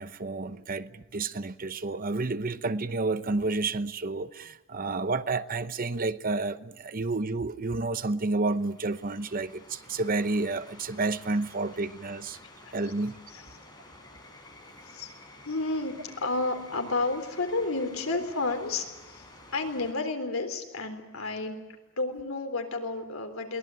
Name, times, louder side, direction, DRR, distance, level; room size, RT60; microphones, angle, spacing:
voice 1, 0.0-12.4 12.7-13.2, right 3 dB, 45° right, 0.9 m, -30 dB
sound 1, 8.4-19.9, left 2 dB, 20° left, 5.0 m, -51 dB
voice 2, 15.4-19.2 19.5-21.6 22.0-23.6, left 3 dB, 85° left, 3.7 m, -31 dB
22.5 x 18.5 x 9.1 m
head